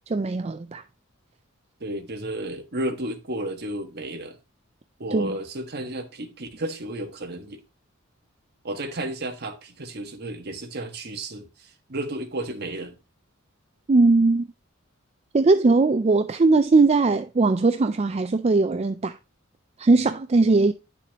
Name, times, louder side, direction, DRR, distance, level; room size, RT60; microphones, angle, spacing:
voice 1, 0.1-0.8 5.1-5.3 13.9-14.5 15.3-19.2 19.8-20.7, right 3 dB, 30° right, 0.4 m, -19 dB
voice 2, 1.8-4.4 5.0-7.6 8.6-12.9, right 1 dB, 50° right, 1.4 m, -32 dB
10.0 x 6.9 x 2.9 m
head